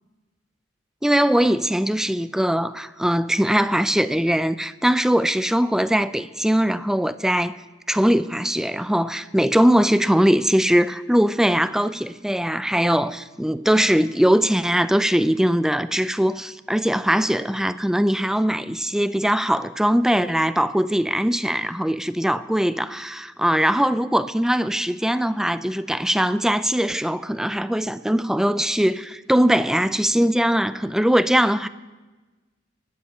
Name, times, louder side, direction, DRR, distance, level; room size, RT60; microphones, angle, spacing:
voice 1, 1.0-7.6 7.9-31.7, equal, 5° right, 0.3 m, -21 dB
23.5 x 12.5 x 2.8 m
head